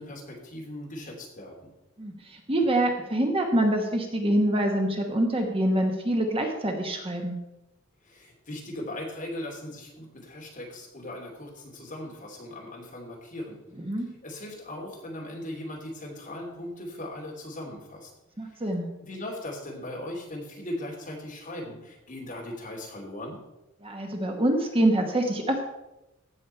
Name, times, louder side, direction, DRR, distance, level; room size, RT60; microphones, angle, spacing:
voice 1, 0.0-1.7 8.0-13.6 14.2-18.1 18.5-18.6 19.0-23.4, left 1 dB, 40° left, -1 dB, 2.8 m, -38 dB
voice 2, 2.0-7.4 13.9-14.1 18.4-18.9 23.8-25.6, right 1 dB, 25° right, 3 dB, 1.1 m, -25 dB
16.0 x 6.4 x 4.4 m, 0.96 s
head